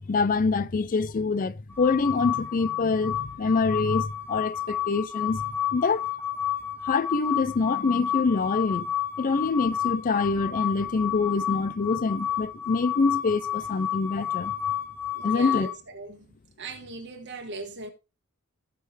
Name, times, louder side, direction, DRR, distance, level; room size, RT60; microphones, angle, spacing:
voice 1, 0.0-5.4 5.7-6.1 6.9-8.9 9.2-14.5 15.2-15.7, left 4 dB, 40° left, 0.4 m, -25 dB
sound 1, 1.7-15.7, left 10 dB, 10° left, 0.7 m, -31 dB
voice 2, 15.1-16.2 16.6-17.9, right 3 dB, 55° right, 1.3 m, -39 dB
16.5 x 5.6 x 3.2 m
head